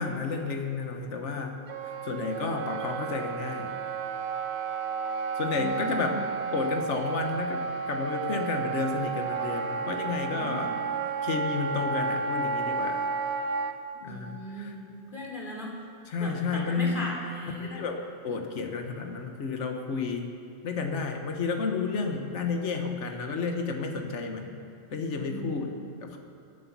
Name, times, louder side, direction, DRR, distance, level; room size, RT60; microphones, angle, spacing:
voice 1, 0.0-1.6 2.0-3.8 5.4-6.2 6.5-10.7 11.2-13.0 14.0-14.7 16.1-17.1 17.6-18.0 18.2-20.3 20.6-24.5 24.9-25.7 26.0-26.2, left 4 dB, 70° left, 4 dB, 1.4 m, -31 dB
Wind instrument woodwind instrument, 1.7-13.7, right 5 dB, 65° right, 1.0 m, -32 dB
voice 2, 5.5-6.2 10.0-10.7 13.9-15.8 16.2-17.7 24.9-25.5, equal, 40° left, -4 dB, 3.5 m, -38 dB
24.0 x 8.0 x 6.0 m, 2.7 s
omnidirectional pair, 1.2 m